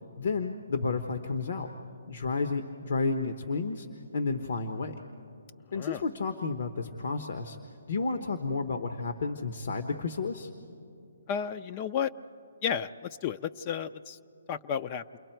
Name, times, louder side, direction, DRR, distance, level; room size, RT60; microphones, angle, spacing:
voice 1, 0.2-1.7 2.1-3.9 4.1-4.9 5.7-7.6 7.9-10.5, left 4 dB, 65° left, 6 dB, 1.0 m, -31 dB
voice 2, 11.3-12.1 12.6-14.2 14.5-15.0, left 8 dB, 30° left, 11 dB, 0.4 m, -32 dB
29.0 x 22.0 x 4.5 m, 2.6 s
hypercardioid pair, 145°, 0 cm